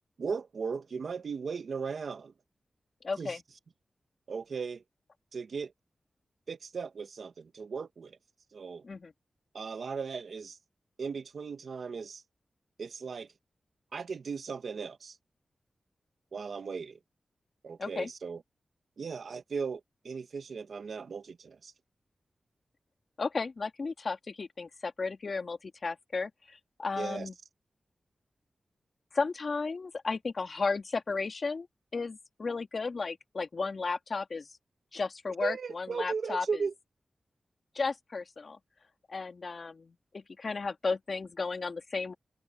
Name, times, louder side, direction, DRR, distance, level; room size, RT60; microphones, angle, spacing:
voice 1, 0.2-2.3 3.2-3.3 4.3-4.8 5.3-5.7 6.5-8.1 8.5-8.8 9.5-10.6 11.0-12.2 12.8-13.3 13.9-15.2 16.3-17.0 17.6-18.4 19.0-21.7 27.0-27.3 35.4-36.7, right 5 dB, 75° right, 1.9 m, -37 dB
voice 2, 3.0-3.4 8.8-9.1 17.8-18.1 23.2-27.3 29.1-31.7 31.9-34.5 34.9-36.6 37.7-38.6 39.1-42.1, left 4 dB, 55° left, 2.3 m, -34 dB
wide cardioid pair, 75°, 0 cm